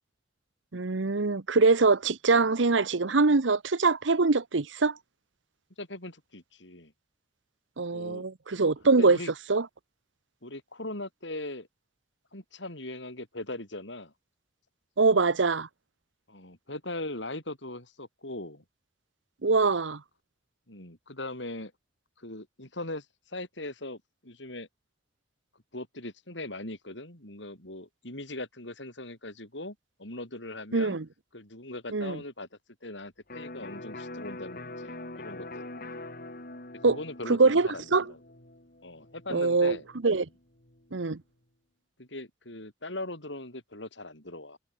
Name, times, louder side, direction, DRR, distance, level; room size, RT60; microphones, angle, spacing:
voice 1, 0.7-5.0 7.8-9.2 9.5-9.6 15.0-15.7 19.4-20.0 30.7-31.1 31.9-32.2 36.8-37.0 37.3-38.0 39.3-39.8 40.0-40.3 40.9-41.2, right 3 dB, 80° right, 1.0 m, -23 dB
voice 2, 5.8-6.9 7.9-8.2 9.0-9.3 10.4-11.7 12.3-14.1 16.3-18.6 20.7-21.7 22.2-24.7 25.7-31.0 31.3-32.5 32.8-35.7 36.9-38.2 38.8-39.8 42.0-44.6, left 2 dB, 75° left, 7.8 m, -40 dB
Electric guitar, 33.3-40.9, left 2 dB, 50° left, 5.3 m, -44 dB
head